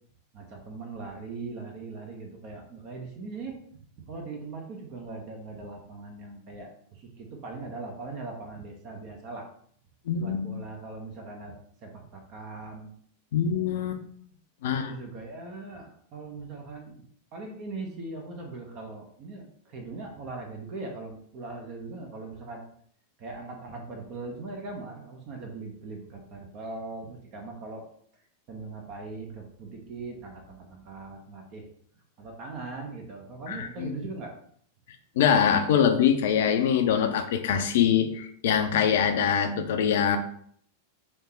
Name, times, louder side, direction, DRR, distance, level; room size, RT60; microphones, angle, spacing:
voice 1, 0.3-9.5 10.2-11.5 11.8-12.9 14.6-17.1 17.3-22.6 23.2-27.9 28.5-31.7 32.2-34.4, right 3 dB, 40° right, 2 dB, 0.9 m, -40 dB
voice 2, 10.1-10.7 13.3-14.0 14.6-14.9 33.5-33.9 35.2-40.2, left 8 dB, 55° left, 7 dB, 0.5 m, -24 dB
3.4 x 2.9 x 4.3 m, 0.63 s
figure-of-eight pair, 90°, 0 cm